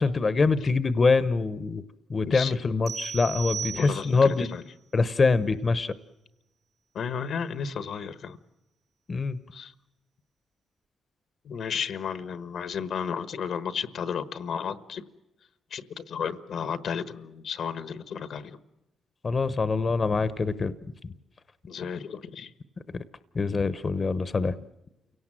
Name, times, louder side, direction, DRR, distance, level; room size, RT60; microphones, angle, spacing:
voice 1, 0.0-1.8 2.1-4.5 4.9-5.9 9.1-9.4 19.2-20.7 21.0-21.1 22.9-23.0 23.3-24.6, left 4 dB, 35° left, 13 dB, 0.9 m, -24 dB
voice 2, 2.2-2.6 3.7-4.6 6.9-8.4 9.5-9.7 11.4-15.0 15.7-18.6 21.7-22.5, left 7 dB, 70° left, 12 dB, 1.2 m, -33 dB
sound 1, 2.9-4.4, right 8 dB, 75° right, 5.5 m, -36 dB
29.0 x 17.5 x 7.6 m, 0.99 s
cardioid pair, 85°, 0 cm